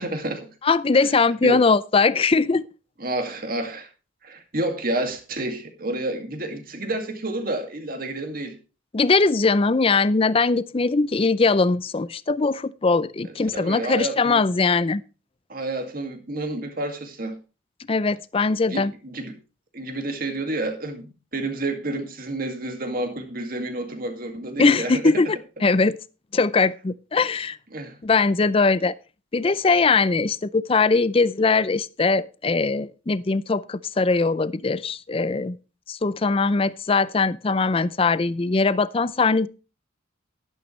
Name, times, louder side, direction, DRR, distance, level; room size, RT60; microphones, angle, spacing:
voice 1, 0.0-0.5 0.9-1.1 1.4-1.7 3.0-3.9 4.2-8.6 13.2-14.4 15.5-17.4 18.7-19.3 19.7-25.2 27.7-28.0, right 2 dB, 45° right, 2.1 m, -29 dB
voice 2, 0.6-2.6 8.9-15.0 17.9-18.9 24.6-25.4 25.6-26.0 26.3-27.6 28.0-28.9 29.3-35.6 35.9-39.5, left 4 dB, 30° left, 0.4 m, -21 dB
11.5 x 11.5 x 3.2 m
head